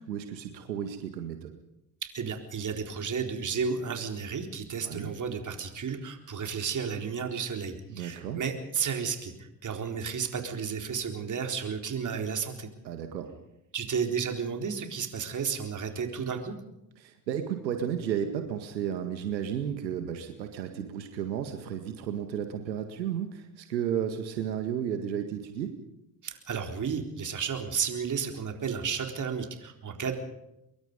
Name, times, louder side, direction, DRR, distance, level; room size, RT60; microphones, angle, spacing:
voice 1, 0.0-1.5 4.8-5.1 7.9-8.4 12.8-13.3 17.0-25.8, right 9 dB, 85° right, 7 dB, 2.0 m, -33 dB
voice 2, 2.0-12.7 13.7-16.6 26.2-30.1, right 6 dB, 35° right, 5 dB, 4.0 m, -32 dB
24.5 x 22.5 x 5.3 m, 0.87 s
hypercardioid pair, 70°, 50 cm